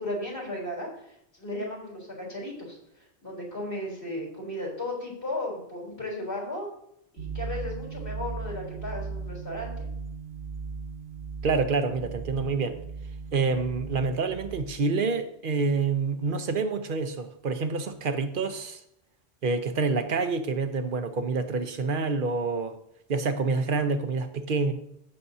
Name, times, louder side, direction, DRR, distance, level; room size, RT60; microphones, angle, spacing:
voice 1, 0.0-2.8 3.2-6.7 7.1-9.9, left 1 dB, 75° left, 4.1 m, -35 dB
sound 1, 7.2-14.7, right 5 dB, 85° right, 1.2 m, -37 dB
voice 2, 11.4-12.8 13.3-18.8 19.4-22.8 23.1-24.7, right 4 dB, 55° right, 1.0 m, -27 dB
15.5 x 6.9 x 2.8 m
omnidirectional pair, 1.1 m